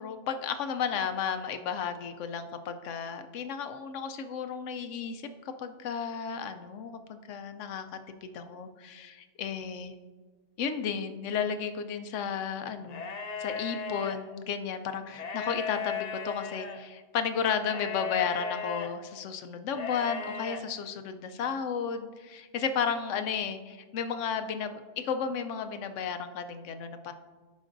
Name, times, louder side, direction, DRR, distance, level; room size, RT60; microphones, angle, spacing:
voice 1, 0.0-5.3 5.6-9.9 10.6-13.1 13.4-27.1, left 6 dB, 75° left, 8 dB, 0.9 m, -33 dB
sound 1, 12.9-14.2 15.1-16.8 17.6-18.9 19.7-20.6, left 6 dB, 55° left, 0.4 m, -36 dB
13.5 x 5.3 x 2.6 m, 1.4 s
omnidirectional pair, 1.3 m